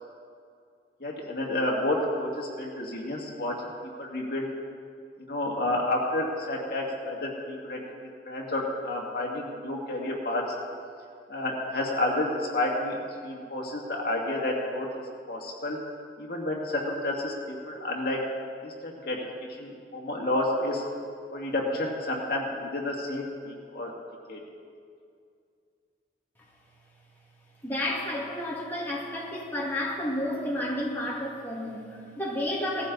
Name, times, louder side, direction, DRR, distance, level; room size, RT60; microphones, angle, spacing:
voice 1, 1.0-3.7 4.0-4.5 5.2-7.8 8.3-10.4 11.3-13.0 13.2-14.9 15.3-15.8 16.2-18.2 18.6-19.2 19.6-20.8 21.3-23.9 24.3-24.4, left 1 dB, 55° left, -1 dB, 2.2 m, -30 dB
voice 2, 27.6-32.9, left 1 dB, 10° left, -5 dB, 2.1 m, -31 dB
18.0 x 14.5 x 4.0 m, 2.3 s
head